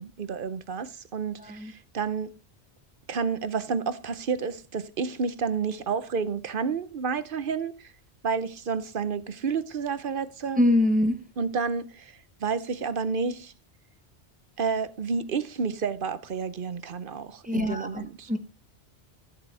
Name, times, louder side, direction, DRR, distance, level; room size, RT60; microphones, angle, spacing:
voice 1, 0.0-2.3 3.1-7.9 8.2-10.6 11.4-13.5 14.6-18.4, right 5 dB, 55° right, 0.9 m, -30 dB
voice 2, 1.4-1.7 10.6-11.2 17.4-18.4, left 1 dB, 10° right, 1.1 m, -24 dB
13.0 x 7.9 x 3.3 m
omnidirectional pair, 1.1 m